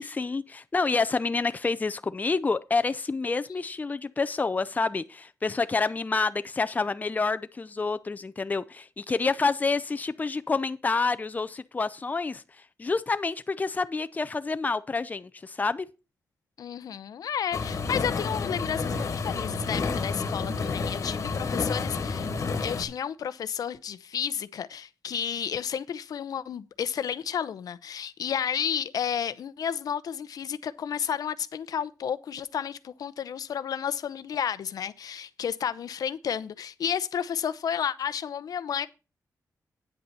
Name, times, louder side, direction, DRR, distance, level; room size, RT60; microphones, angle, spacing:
voice 1, 0.0-12.4 12.8-15.9, left 4 dB, 25° left, 0.6 m, -28 dB
voice 2, 16.6-22.3 22.6-38.9, left 8 dB, 85° left, 0.7 m, -32 dB
sound 1, 17.5-22.8, left 4 dB, 55° left, 1.6 m, -30 dB
9.5 x 7.9 x 4.1 m
wide cardioid pair, 120°, 6 cm